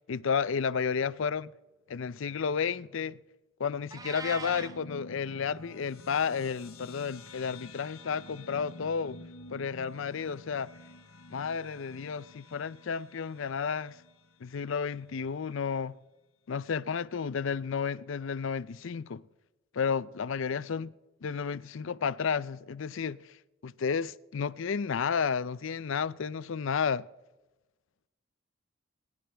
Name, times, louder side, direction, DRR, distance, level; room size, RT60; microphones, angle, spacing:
voice 1, 0.1-1.5 1.9-3.2 3.6-9.2 9.5-10.7 11.3-14.0 14.4-15.9 16.5-19.2 19.7-20.9 21.2-23.2 23.6-27.1, left 6 dB, 65° left, 0.5 m, -32 dB
Meow, 3.9-4.8, right 3 dB, 15° right, 0.7 m, -40 dB
sound 1, 4.0-14.7, left 2 dB, 85° left, 1.3 m, -50 dB
28.0 x 11.0 x 3.4 m
head